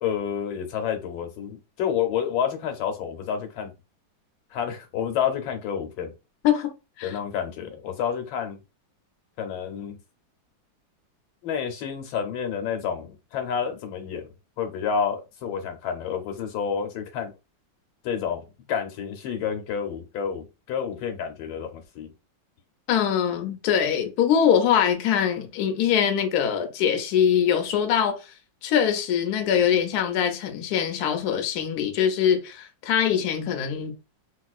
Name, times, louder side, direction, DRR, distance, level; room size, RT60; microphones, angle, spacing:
voice 1, 0.0-3.7 4.5-6.1 7.0-8.6 9.4-10.0 11.4-17.3 18.0-22.1, left 7 dB, 90° left, 1.5 m, -29 dB
voice 2, 22.9-28.2 28.6-33.9, left 8 dB, 65° left, 1.0 m, -23 dB
3.0 x 2.8 x 2.4 m
omnidirectional pair, 2.1 m